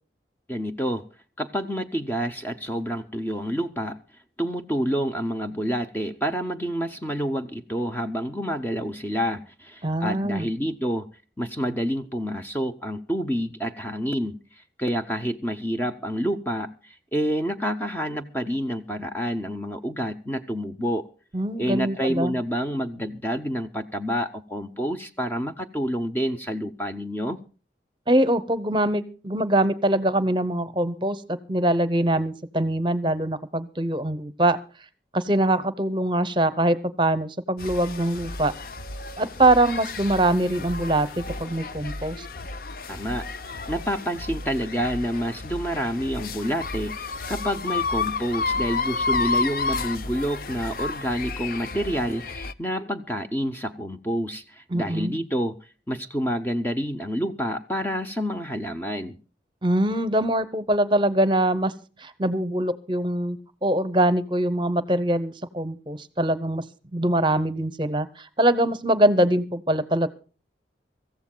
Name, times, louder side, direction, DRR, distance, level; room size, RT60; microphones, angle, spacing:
voice 1, 0.5-1.1 1.4-4.0 4.4-11.1 11.4-21.1 21.6-27.4 42.9-43.3 43.7-59.2, equal, 10° left, 0.7 m, -28 dB
voice 2, 9.8-10.5 21.3-22.3 28.1-34.6 35.1-38.5 39.2-42.3 54.7-55.1 59.6-61.7 62.0-66.6 66.9-70.1, right 1 dB, 25° right, 0.9 m, -23 dB
sound 1, 37.6-52.5, left 4 dB, 50° left, 0.6 m, -31 dB
25.5 x 14.5 x 2.3 m
head